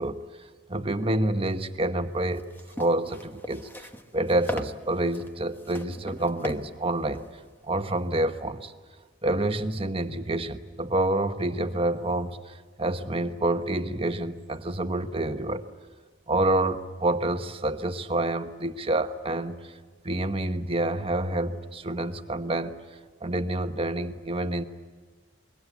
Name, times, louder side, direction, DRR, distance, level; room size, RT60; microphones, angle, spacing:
voice 1, 0.0-7.2 7.7-8.7 9.2-15.6 16.3-19.8 20.0-22.7 23.2-24.6, right 1 dB, 30° right, 8 dB, 1.1 m, -28 dB
sound 1, 2.2-8.2, left 1 dB, 10° left, 1.1 m, -40 dB
26.0 x 22.5 x 8.1 m, 1.4 s
head